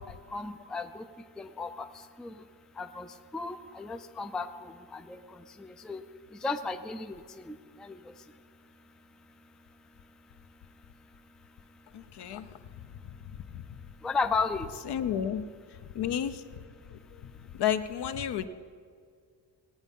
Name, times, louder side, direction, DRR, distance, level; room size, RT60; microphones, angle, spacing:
voice 1, 0.3-1.0 1.4-1.9 2.2-2.3 2.8-3.1 3.3-5.2 5.6-6.0 6.4-7.2 7.5-8.0 14.0-14.7, left 4 dB, ahead, 8 dB, 0.3 m, -34 dB
voice 2, 11.9-12.5 14.9-15.4 15.9-16.4 17.6-18.5, left 9 dB, 65° left, 11 dB, 0.8 m, -30 dB
18.5 x 8.2 x 5.4 m, 2.1 s
cardioid pair, 125°, 43 cm